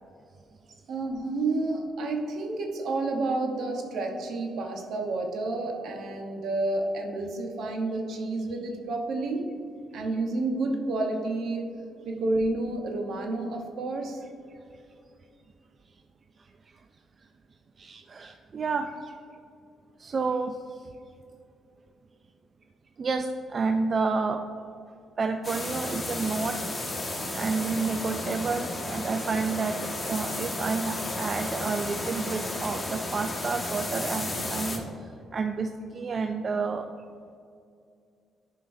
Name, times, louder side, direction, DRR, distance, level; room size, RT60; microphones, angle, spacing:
voice 1, 0.9-9.5 9.9-11.7 12.0-14.2, right 2 dB, 70° right, 2 dB, 1.0 m, -30 dB
voice 2, 17.8-19.1 20.0-20.8 23.0-24.5 25.2-26.6 27.3-36.9, right 4 dB, 45° right, 6 dB, 0.3 m, -30 dB
sound 1, 25.4-34.8, left 2 dB, 20° left, 1.3 m, -33 dB
11.5 x 5.2 x 2.7 m, 2.5 s
cardioid pair, 90°, 0 cm